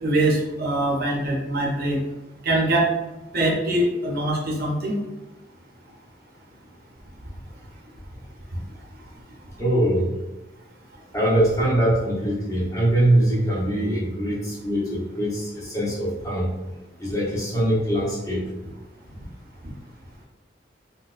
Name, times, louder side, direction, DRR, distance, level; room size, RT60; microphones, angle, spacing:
voice 1, 0.0-2.0 2.4-2.9 3.3-5.0, right 1 dB, 55° right, -1 dB, 0.6 m, -23 dB
voice 2, 9.6-10.1 11.1-16.5 17.0-18.5, right 1 dB, 15° left, -5 dB, 0.8 m, -22 dB
4.0 x 2.1 x 2.4 m, 1.0 s
head